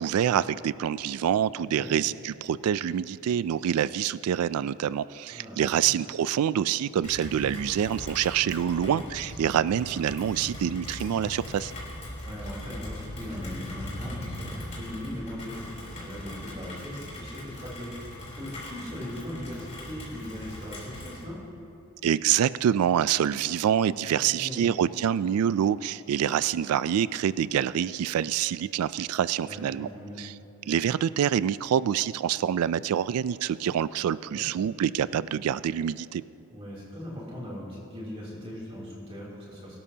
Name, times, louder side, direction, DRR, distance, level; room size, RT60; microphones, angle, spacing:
voice 1, 0.0-11.7 22.0-29.9 30.2-30.3 30.7-36.2, right 9 dB, 80° right, 17 dB, 0.3 m, -26 dB
voice 2, 5.3-5.9 8.8-9.0 12.3-21.4 24.1-24.7 29.5-30.2 34.3-34.5 36.5-39.8, left 1 dB, 25° right, -6 dB, 3.0 m, -39 dB
Rain, 7.0-21.2, left 1 dB, 35° left, 3.5 m, -40 dB
23.5 x 12.5 x 2.8 m, 2.8 s
head